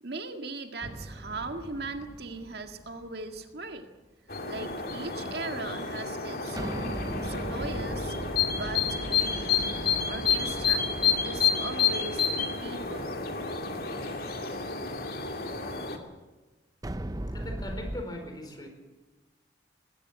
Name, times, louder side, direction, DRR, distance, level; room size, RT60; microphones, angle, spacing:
voice 1, 0.0-3.9 4.5-6.8 7.2-8.1 8.5-9.6 10.1-10.9 11.2-13.2, right 3 dB, 60° right, 5 dB, 1.9 m, -39 dB
sound 1, 0.8-3.4 6.6-13.8 16.8-18.0, right 1 dB, 20° right, 0.7 m, -39 dB
sound 2, 4.3-16.0, left 6 dB, 50° left, 2.7 m, -30 dB
voice 2, 17.1-18.7, left 1 dB, 20° left, 4 dB, 4.6 m, -40 dB
20.0 x 18.0 x 7.7 m, 1.2 s
head